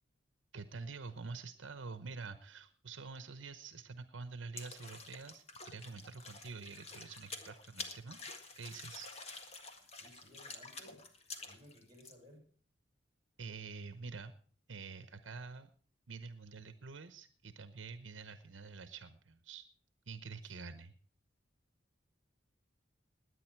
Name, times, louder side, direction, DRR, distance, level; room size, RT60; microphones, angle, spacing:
voice 1, 0.5-8.2 8.6-9.7 13.4-14.3 14.7-15.7 16.1-19.7 20.1-20.9, right 4 dB, 75° right, 11 dB, 0.9 m, -47 dB
sound 1, 4.6-12.1, left 3 dB, 35° left, 1.7 m, -49 dB
voice 2, 9.9-11.1 11.4-12.5 20.4-20.8, equal, 25° right, 4 dB, 5.8 m, -59 dB
20.0 x 9.4 x 4.6 m, 0.44 s
head